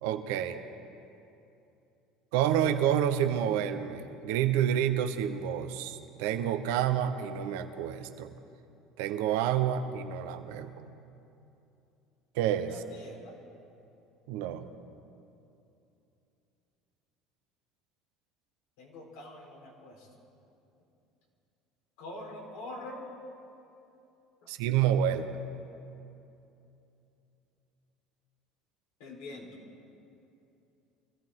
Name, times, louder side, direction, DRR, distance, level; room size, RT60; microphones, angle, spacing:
voice 1, 0.0-0.6 2.3-8.3 9.0-10.7 12.3-12.8 14.3-14.7 24.5-25.3, right 10 dB, 80° right, 8 dB, 1.0 m, -29 dB
voice 2, 12.7-13.3 18.8-20.1 22.0-23.0 29.0-29.5, left 1 dB, 80° left, -2 dB, 4.2 m, -44 dB
24.5 x 14.5 x 3.8 m, 2.8 s
supercardioid pair, 95°, 0 cm